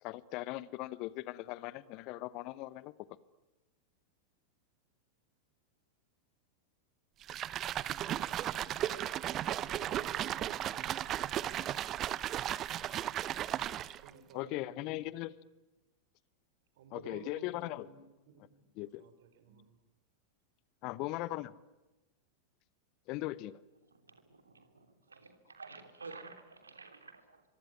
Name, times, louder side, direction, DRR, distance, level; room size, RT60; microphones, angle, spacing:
voice 1, 0.0-2.9 14.3-15.3 16.9-17.9 18.8-19.0 20.8-21.5 23.1-23.5, left 17 dB, 40° left, 19 dB, 1.0 m, -39 dB
sound 1, 7.2-14.1, right 12 dB, 30° right, 0.9 m, -35 dB
voice 2, 8.8-9.1 9.4-10.6 13.5-15.0 16.7-18.7 19.0-19.8, right 5 dB, 55° right, 10 dB, 4.6 m, -55 dB
voice 3, 23.9-27.4, right 4 dB, 75° right, 7 dB, 3.0 m, -51 dB
25.0 x 24.0 x 9.6 m, 1.1 s
figure-of-eight pair, 90°, 0 cm